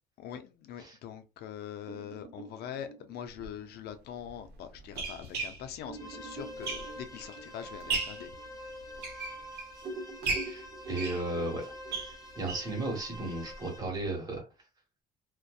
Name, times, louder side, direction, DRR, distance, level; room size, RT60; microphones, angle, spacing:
voice 1, 0.2-8.3, left 9 dB, 70° left, 0.4 m, -43 dB
sound 1, 1.8-4.9 5.4-5.5 5.8-9.5 9.7-13.9, right 2 dB, 40° right, 0.5 m, -47 dB
sound 2, 3.3-3.5 4.3-7.2 7.6-8.3 8.8-9.8 10.2-12.8 13.1-13.2 13.5-13.6 14.0-14.1, right 4 dB, 75° right, 0.8 m, -36 dB
sound 3, 5.9-13.8, equal, 20° left, 0.8 m, -46 dB
voice 2, 10.4-11.6 11.9-14.4, right 2 dB, 20° right, 1.2 m, -35 dB
2.6 x 2.1 x 2.2 m
cardioid pair, 110°, 17 cm